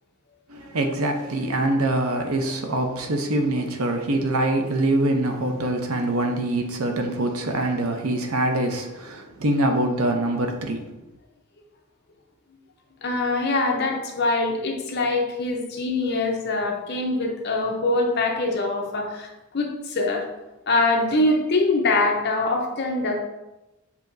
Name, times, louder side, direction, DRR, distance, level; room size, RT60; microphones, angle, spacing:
voice 1, 0.5-10.9, right 1 dB, 85° right, 4 dB, 0.7 m, -24 dB
voice 2, 13.0-20.3 20.7-23.2, left 2 dB, 50° left, 1 dB, 0.7 m, -23 dB
7.1 x 2.9 x 2.6 m, 1.0 s
head